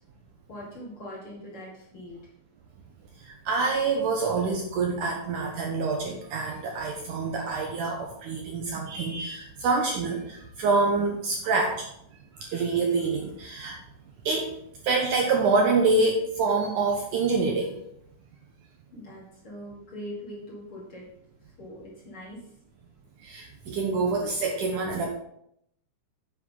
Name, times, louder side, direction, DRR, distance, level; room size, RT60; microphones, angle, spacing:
voice 1, 0.5-2.2 18.9-21.1 21.4-22.5, equal, 45° left, -4 dB, 2.0 m, -42 dB
voice 2, 3.2-11.9 12.3-13.8 14.3-14.6 14.8-17.8 23.2-25.1, right 3 dB, 70° right, 1 dB, 2.0 m, -26 dB
9.0 x 7.7 x 3.8 m, 0.76 s
omnidirectional pair, 4.5 m